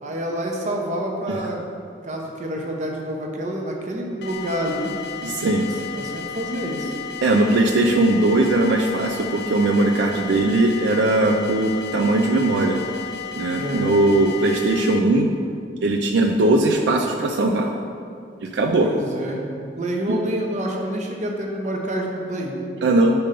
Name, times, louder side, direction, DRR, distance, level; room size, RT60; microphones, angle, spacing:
voice 1, 0.0-1.6 2.0-4.9 5.6-5.7 5.9-6.9 13.6-13.9 18.8-19.4 19.8-22.6, right 1 dB, 45° right, 1 dB, 0.8 m, -27 dB
sound 1, 4.2-15.0, left 7 dB, 60° left, 0.4 m, -34 dB
voice 2, 5.2-5.7 7.2-12.8 13.3-15.3 15.8-17.7 18.4-18.9 22.8-23.1, right 2 dB, 80° right, 3 dB, 0.4 m, -19 dB
5.2 x 4.3 x 5.2 m, 2.3 s
head